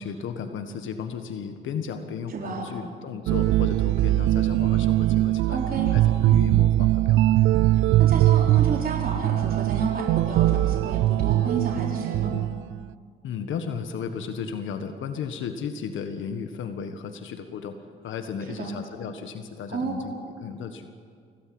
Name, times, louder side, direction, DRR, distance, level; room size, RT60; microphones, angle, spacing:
voice 1, 0.0-5.6 5.9-7.4 13.2-17.8 18.0-20.1 20.4-20.9, left 6 dB, 75° left, 7 dB, 1.6 m, -34 dB
voice 2, 2.3-2.7 5.5-5.9 8.0-12.3 18.5-18.8 19.7-20.0, right 4 dB, 50° right, -1 dB, 3.9 m, -31 dB
sound 1, 3.3-12.8, right 15 dB, 85° right, 0.5 m, -21 dB
25.0 x 17.0 x 7.9 m, 2.1 s
cardioid pair, 90°, 20 cm